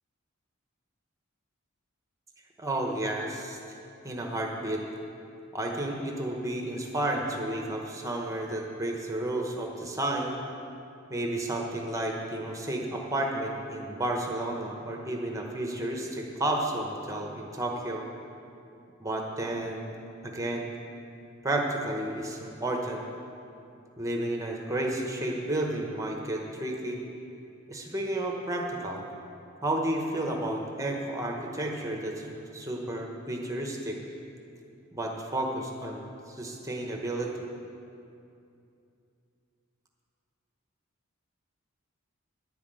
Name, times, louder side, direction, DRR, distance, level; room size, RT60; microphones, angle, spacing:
voice 1, 2.6-3.6 4.0-4.8 5.5-10.3 11.1-18.0 19.0-19.9 20.2-20.7 21.4-23.0 24.0-27.0 27.7-29.0 29.6-34.0 34.9-37.4, right 1 dB, 15° right, 1 dB, 0.9 m, -32 dB
10.5 x 5.9 x 8.8 m, 2.6 s
head